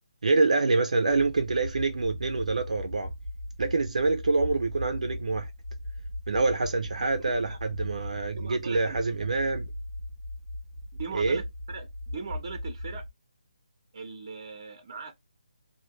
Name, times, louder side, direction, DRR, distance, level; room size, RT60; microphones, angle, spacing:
voice 1, 0.2-3.1 3.6-5.5 6.3-9.7 11.1-11.4, right 3 dB, 65° right, 0.6 m, -26 dB
sound 1, 1.1-13.1, left 1 dB, 20° left, 1.3 m, -38 dB
voice 2, 7.0-7.6 8.4-9.0 11.0-13.0 13.9-15.1, right 5 dB, 30° right, 1.0 m, -40 dB
3.1 x 2.3 x 3.0 m
hypercardioid pair, 175°, 4 cm